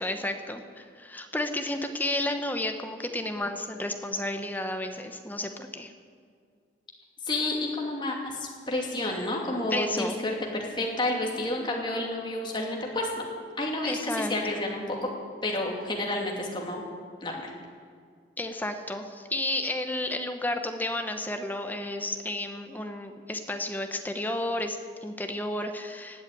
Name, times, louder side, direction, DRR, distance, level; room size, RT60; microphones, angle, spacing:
voice 1, 0.0-5.9 9.7-10.2 13.8-14.6 18.4-26.2, left 1 dB, 10° left, 6 dB, 1.0 m, -32 dB
voice 2, 7.3-13.2 13.6-15.1 15.4-16.8 17.2-17.5, left 2 dB, 25° left, -1 dB, 2.5 m, -30 dB
17.5 x 8.2 x 9.1 m, 2.1 s
head